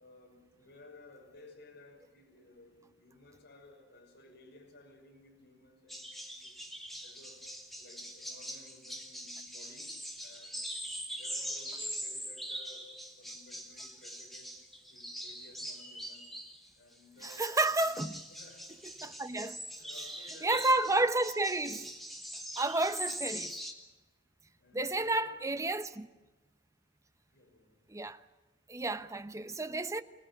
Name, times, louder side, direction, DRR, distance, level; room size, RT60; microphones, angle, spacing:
voice 1, 0.0-6.1 6.3-6.5 7.0-7.5 7.8-14.6 14.9-16.3 16.8-17.9 18.3-19.2 19.7-20.9 24.6-25.4 27.3-27.8, left 2 dB, 60° left, 6.1 m, -57 dB
sound 1, 5.9-16.7 17.2-23.7, equal, ahead, 2.6 m, -42 dB
voice 2, 17.4-18.2 19.0-19.6 20.4-21.9 22.6-23.6 24.7-26.1 27.9-28.2 28.7-30.0, right 2 dB, 15° right, 0.9 m, -31 dB
25.5 x 18.0 x 9.9 m
head